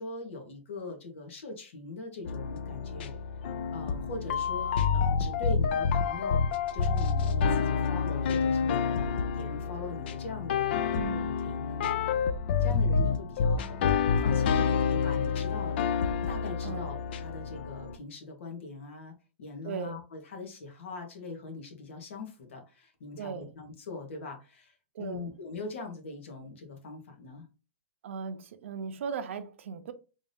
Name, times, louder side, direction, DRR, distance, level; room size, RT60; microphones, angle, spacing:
voice 1, 0.0-3.2 3.7-6.4 6.7-12.0 12.6-13.8 14.2-15.8 16.3-27.4, left 3 dB, 65° left, 1.4 m, -42 dB
sound 1, 2.3-18.0, left 6 dB, 50° left, 0.4 m, -28 dB
voice 2, 10.9-11.3 16.6-16.9 19.6-20.0 23.2-23.5 24.9-25.4 28.0-29.9, right 6 dB, 65° right, 0.6 m, -37 dB
3.6 x 2.7 x 3.4 m
supercardioid pair, 175°, 7 cm